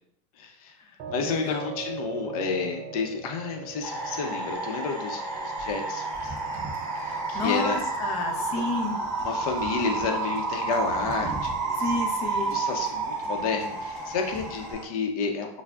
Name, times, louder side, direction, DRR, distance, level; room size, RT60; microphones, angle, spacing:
voice 1, 0.4-0.7 1.1-6.4 7.0-7.8 8.3-8.6 9.2-12.0 12.4-15.6, left 5 dB, 80° left, 3 dB, 0.6 m, -31 dB
sound 1, 1.0-14.0, right 6 dB, 50° right, 0.4 m, -44 dB
voice 2, 1.2-1.7 7.3-9.0 11.7-12.5, left 3 dB, 35° left, 3 dB, 0.5 m, -30 dB
sound 2, 3.8-14.8, right 3 dB, 5° left, 1.4 m, -31 dB
Wind / Boat Water vehicle, 6.1-14.7, right 1 dB, 15° right, 1.3 m, -44 dB
5.7 x 2.0 x 2.3 m, 0.69 s
supercardioid pair, 150°, 18 cm